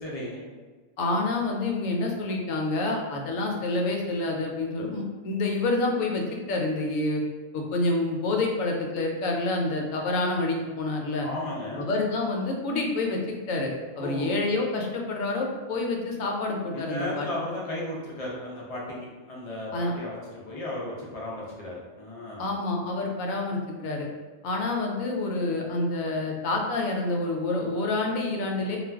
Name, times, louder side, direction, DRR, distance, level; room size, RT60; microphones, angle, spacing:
voice 1, 0.0-0.4 11.2-11.9 13.9-14.3 16.7-22.5, left 1 dB, 60° left, -4 dB, 0.3 m, -35 dB
voice 2, 1.0-6.2 6.5-7.2 7.5-11.3 11.8-17.3 19.7-19.9 22.4-24.1 24.4-28.8, left 2 dB, 80° left, 0 dB, 1.0 m, -28 dB
2.4 x 2.2 x 3.3 m, 1.4 s
omnidirectional pair, 1.4 m